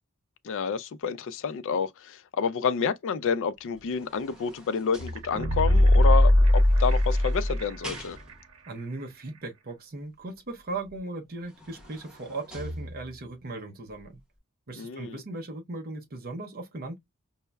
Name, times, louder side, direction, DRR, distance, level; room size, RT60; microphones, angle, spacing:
voice 1, 0.4-8.2 14.7-15.2, left 6 dB, 60° left, 0.4 m, -29 dB
sound 1, 3.6-5.8 6.6-8.6 10.9-11.0 11.4-13.4 13.9-14.0, equal, 5° right, 1.0 m, -44 dB
sound 2, 5.1-8.0 8.3-8.4, left 1 dB, 80° right, 0.9 m, -20 dB
voice 2, 8.7-14.2 14.7-17.0, right 2 dB, 45° right, 0.7 m, -38 dB
5.4 x 2.0 x 2.2 m
head